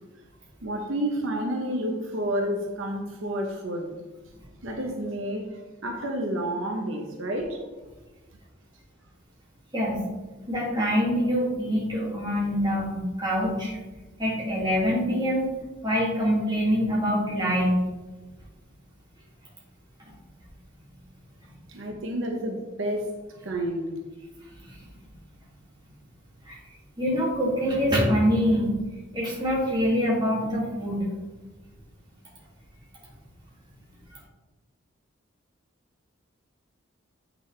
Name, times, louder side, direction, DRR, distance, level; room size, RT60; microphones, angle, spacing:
voice 1, 0.6-3.9 4.6-7.6 21.7-24.0, right 1 dB, 75° right, 2 dB, 0.9 m, -30 dB
voice 2, 9.7-10.0 10.5-13.8 14.2-15.5 15.8-17.8 20.0-20.1 24.6-24.8 26.5-26.6 27.0-28.7 29.1-31.1 34.1-34.2, equal, 20° right, -5 dB, 2.4 m, -25 dB
8.5 x 6.1 x 3.3 m, 1.2 s
head